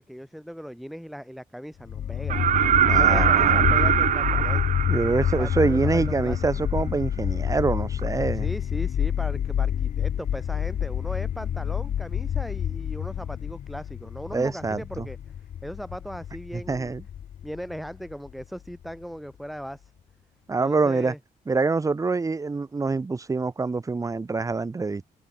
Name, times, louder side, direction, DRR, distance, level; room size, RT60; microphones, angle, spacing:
voice 1, 0.0-2.4 2.9-4.7 5.2-6.4 8.3-15.2 15.6-16.9 17.4-19.9 20.6-21.2, equal, ahead, 4.9 m, -38 dB
sound 1, 1.9-18.9, left 9 dB, 55° left, 0.9 m, -28 dB
sound 2, 2.3-6.1 8.0-8.1, right 10 dB, 55° right, 0.7 m, -22 dB
voice 2, 2.8-3.7 4.9-8.5 14.3-15.1 16.5-17.0 20.5-21.1 21.5-25.1, right 4 dB, 20° right, 1.1 m, -25 dB
cardioid pair, 110°, 16 cm